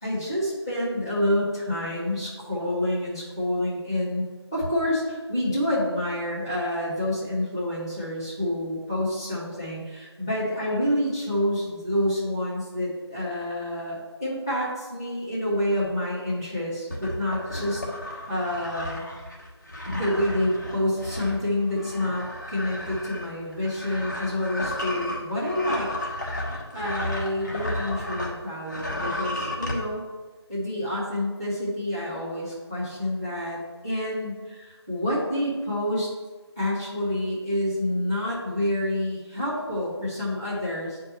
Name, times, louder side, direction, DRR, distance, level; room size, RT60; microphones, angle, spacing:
voice 1, 0.0-4.2 4.5-19.0 19.8-25.9 26.3-30.0 30.5-36.1 36.6-41.0, left 1 dB, 10° left, -10 dB, 1.3 m, -28 dB
sound 1, 16.9-28.4 28.6-29.8, left 1 dB, 40° left, 1.2 m, -33 dB
8.2 x 4.5 x 3.0 m, 1.3 s
figure-of-eight pair, 165°, 15 cm